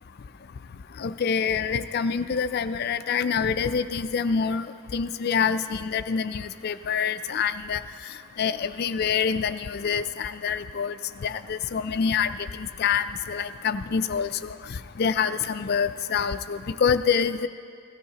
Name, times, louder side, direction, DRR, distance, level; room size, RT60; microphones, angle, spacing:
voice 1, 1.0-7.8 8.4-10.9 11.2-12.3 12.8-14.3 15.0-17.5, left 6 dB, 45° left, 12 dB, 0.3 m, -26 dB
16.5 x 14.5 x 2.9 m, 2.2 s
head